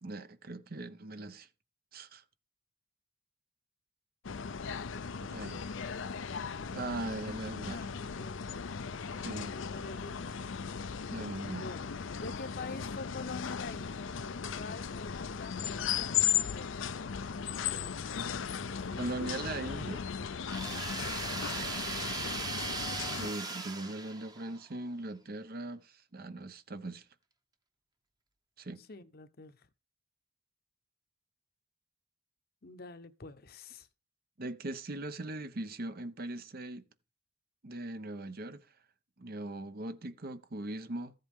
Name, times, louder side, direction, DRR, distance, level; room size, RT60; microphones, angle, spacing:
voice 1, 0.0-1.5 1.9-2.2 5.2-5.6 6.7-7.8 9.2-9.5 11.1-11.7 18.9-20.1 23.2-27.1 28.6-28.8 34.4-36.8 37.6-38.7 39.2-41.1, right 2 dB, 50° right, 0.9 m, -40 dB
sound 1, 4.2-23.3, left 7 dB, 75° left, 0.6 m, -37 dB
voice 2, 6.7-7.1 7.7-8.5 9.0-10.3 11.6-16.8 18.7-20.0 21.5-21.9 28.8-29.7 32.6-33.9, left 3 dB, 50° left, 0.9 m, -47 dB
sound 2, 20.5-24.6, right 3 dB, 20° right, 1.0 m, -38 dB
14.5 x 7.8 x 3.6 m
head